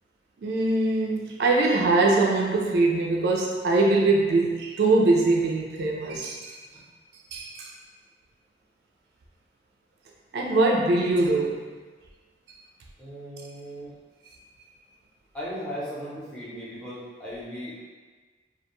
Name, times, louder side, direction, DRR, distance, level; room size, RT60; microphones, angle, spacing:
voice 1, 0.4-6.6 7.3-7.7 10.3-11.6, right 2 dB, 65° right, -1 dB, 0.3 m, -22 dB
voice 2, 13.0-13.9 15.3-17.7, equal, 5° left, -9 dB, 0.6 m, -37 dB
2.4 x 2.2 x 3.0 m, 1.4 s
head